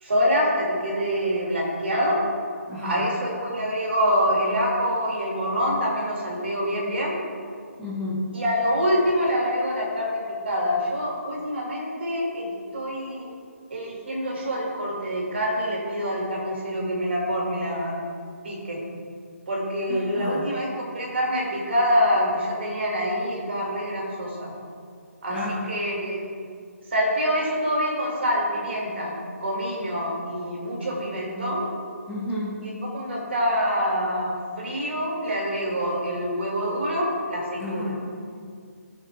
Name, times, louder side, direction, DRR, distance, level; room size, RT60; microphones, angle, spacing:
voice 1, 0.0-2.2 2.8-7.2 8.3-13.3 13.7-18.0 18.4-18.8 19.5-24.5 25.2-26.2 26.9-29.1 29.4-31.7 32.8-38.0, equal, 50° right, -2 dB, 2.1 m, -26 dB
voice 2, 2.7-3.1 7.8-8.3 19.9-20.4 25.3-25.7 32.1-32.6 37.6-38.0, left 1 dB, 5° left, -9 dB, 0.4 m, -31 dB
16.0 x 6.7 x 2.3 m, 2.1 s
hypercardioid pair, 180°, 8 cm